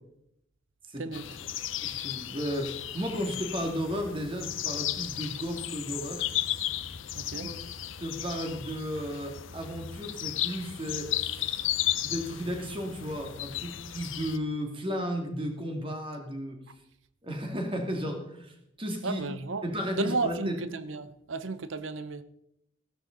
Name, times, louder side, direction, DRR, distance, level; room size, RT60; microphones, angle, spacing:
sound 1, 1.1-14.4, left 12 dB, 70° left, 0.7 m, -34 dB
voice 1, 1.8-6.2 7.4-7.5 8.0-11.6 12.0-16.6 17.2-19.2 19.6-20.6, equal, 25° right, 2.2 m, -34 dB
voice 2, 7.1-7.5 19.0-19.6 19.9-22.2, right 3 dB, 70° right, 0.8 m, -33 dB
15.5 x 12.5 x 3.9 m
head